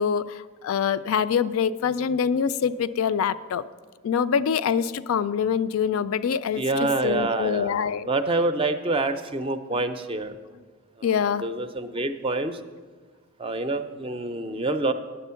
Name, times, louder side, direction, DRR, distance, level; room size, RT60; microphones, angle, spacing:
voice 1, 0.0-3.6 4.0-8.1 9.7-9.8 11.0-11.5, left 7 dB, 80° left, 14 dB, 0.3 m, -25 dB
voice 2, 6.6-10.3 11.0-12.6 13.4-14.9, right 2 dB, 25° right, 9 dB, 0.4 m, -27 dB
10.0 x 7.5 x 5.6 m, 1.5 s
head